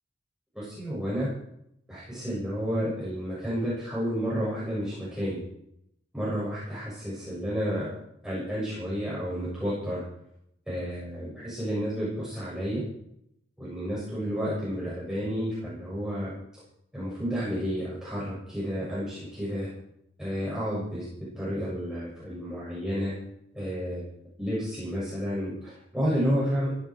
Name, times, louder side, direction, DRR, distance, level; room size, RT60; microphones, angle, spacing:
voice 1, 0.5-1.3 1.9-5.4 6.1-7.9 8.2-10.0 10.7-12.8 13.6-16.3 16.9-19.7 20.2-21.1 21.3-23.1 23.5-24.1 24.4-26.7, equal, 5° right, -9 dB, 7.1 m, -31 dB
16.5 x 16.5 x 4.7 m, 0.75 s
head